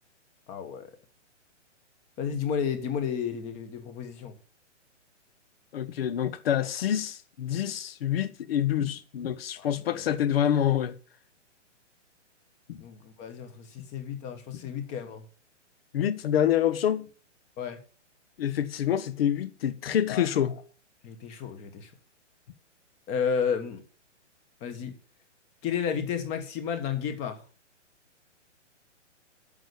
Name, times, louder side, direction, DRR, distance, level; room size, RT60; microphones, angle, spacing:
voice 1, 0.5-0.9 2.2-4.4 9.6-10.1 12.8-15.2 17.6-17.8 20.1-20.3 21.0-21.9 23.1-23.8 24.6-24.9 25.6-27.4, left 7 dB, 20° left, 1.3 m, -32 dB
voice 2, 5.7-10.9 12.7-12.8 15.9-17.1 18.4-20.5, left 10 dB, 50° left, 1.1 m, -27 dB
9.0 x 6.8 x 8.2 m
hypercardioid pair, 160°, 37 cm